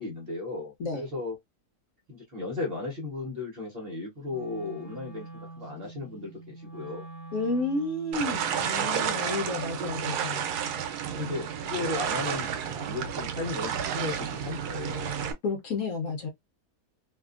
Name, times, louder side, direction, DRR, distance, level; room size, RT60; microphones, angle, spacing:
voice 1, 0.0-1.4 2.1-7.1 8.8-9.3 11.0-15.1, left 3 dB, 45° right, 1.1 m, -36 dB
Wind instrument woodwind instrument, 4.2-11.0, right 3 dB, 35° left, 1.1 m, -45 dB
voice 2, 7.3-10.4 11.2-11.4 15.4-16.3, left 3 dB, 65° left, 1.0 m, -31 dB
sound 1, 8.1-15.3, right 8 dB, 85° right, 1.1 m, -31 dB
2.7 x 2.4 x 2.3 m
omnidirectional pair, 1.6 m